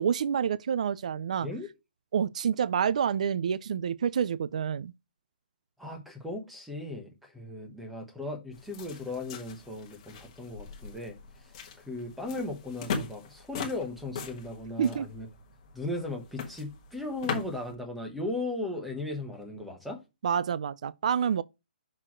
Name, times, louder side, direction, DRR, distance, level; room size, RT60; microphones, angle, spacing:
voice 1, 0.0-1.5 2.1-4.9 14.8-15.1 20.2-21.4, right 7 dB, 40° right, 0.3 m, -28 dB
voice 2, 5.8-15.3 15.7-20.0, left 2 dB, ahead, 1.0 m, -37 dB
sound 1, 8.5-17.7, left 5 dB, 25° left, 1.3 m, -40 dB
6.1 x 4.5 x 5.9 m
hypercardioid pair, 180°, 6 cm